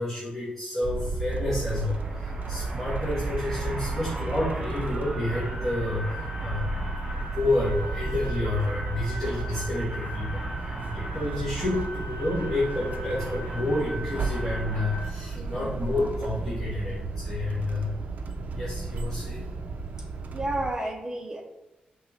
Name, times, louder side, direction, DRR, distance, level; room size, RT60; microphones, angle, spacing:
voice 1, 0.0-17.9 18.5-19.5, left 2 dB, 5° left, -10 dB, 1.3 m, -30 dB
sound 1, 0.8-20.7, right 3 dB, 60° right, 0.4 m, -33 dB
sound 2, 1.4-15.1, right 1 dB, 45° right, 1.3 m, -39 dB
voice 2, 15.4-15.8 20.3-21.4, right 1 dB, 20° right, 1 dB, 0.7 m, -32 dB
5.2 x 3.3 x 3.1 m, 0.98 s
wide cardioid pair, 170°, 3 cm